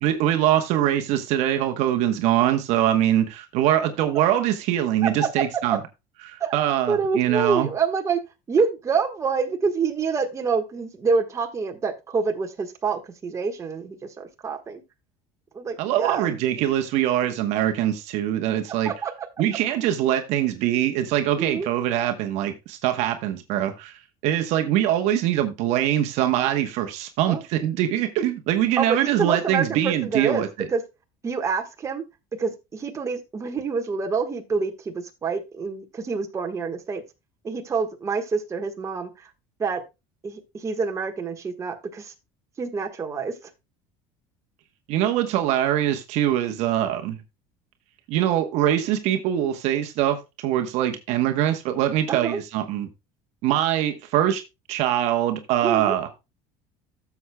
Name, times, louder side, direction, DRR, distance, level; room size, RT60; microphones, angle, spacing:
voice 1, 0.0-5.8 6.2-7.7 15.8-18.9 19.4-23.9 24.2-30.5 44.9-47.2 48.1-52.9 53.4-54.4 54.7-56.1, right 11 dB, 65° right, 1.1 m, -23 dB
voice 2, 5.0-5.8 6.4-6.6 6.9-8.2 8.5-14.8 15.5-16.3 18.8-19.3 21.4-21.7 27.3-27.4 28.8-30.8 31.2-32.0 32.4-37.0 37.4-39.3 39.6-39.8 40.2-42.1 42.6-43.3 52.1-52.4 55.6-56.0, right 5 dB, 25° right, 1.4 m, -27 dB
13.0 x 7.1 x 2.2 m
cardioid pair, 130°, 12 cm